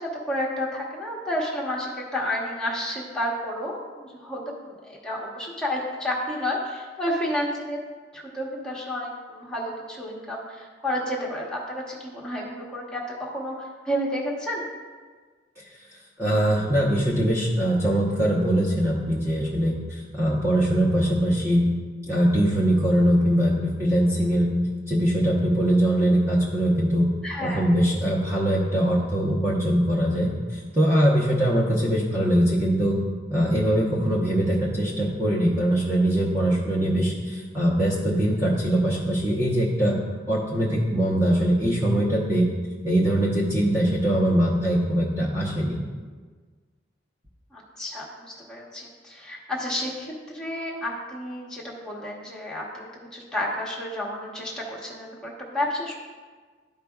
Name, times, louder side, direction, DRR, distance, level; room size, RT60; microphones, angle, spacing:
voice 1, 0.0-7.8 8.1-14.7 27.2-27.6 47.5-56.0, left 1 dB, 5° left, -5 dB, 1.1 m, -31 dB
voice 2, 16.2-21.7 22.1-24.5 24.9-27.1 27.4-33.0 33.3-40.0 40.3-42.5 42.8-45.8, right 1 dB, 15° right, -6 dB, 0.8 m, -22 dB
12.5 x 5.0 x 2.3 m, 1.5 s
head